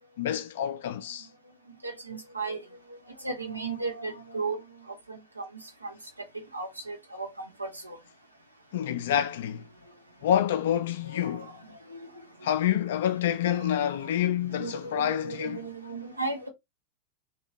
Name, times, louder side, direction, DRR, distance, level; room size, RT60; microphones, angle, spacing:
voice 1, 0.2-1.3 8.7-9.7 10.2-11.5 12.4-15.7, left 10 dB, 55° left, 0.4 m, -27 dB
voice 2, 1.8-4.6 4.9-5.9 6.5-8.0 8.8-9.0 11.0-12.3 13.5-14.1 14.5-16.5, right 3 dB, 85° right, 0.8 m, -36 dB
2.8 x 2.7 x 2.7 m
figure-of-eight pair, 90°, 0 cm